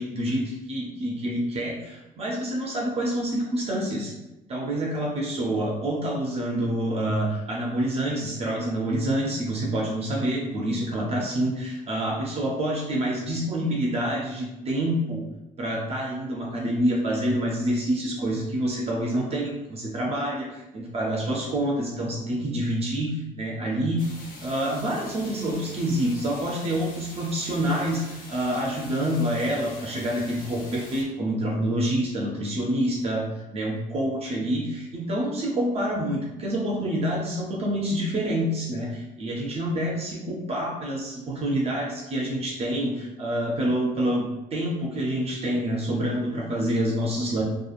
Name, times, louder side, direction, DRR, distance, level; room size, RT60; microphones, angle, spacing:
voice 1, 0.0-4.1 4.5-15.2 15.6-24.0 24.4-33.3 33.5-47.4, right 1 dB, 35° right, -2 dB, 0.5 m, -27 dB
sound 1, 24.0-31.0, left 2 dB, 55° left, 0.8 m, -44 dB
2.7 x 2.3 x 2.4 m, 0.98 s
cardioid pair, 110°, 17 cm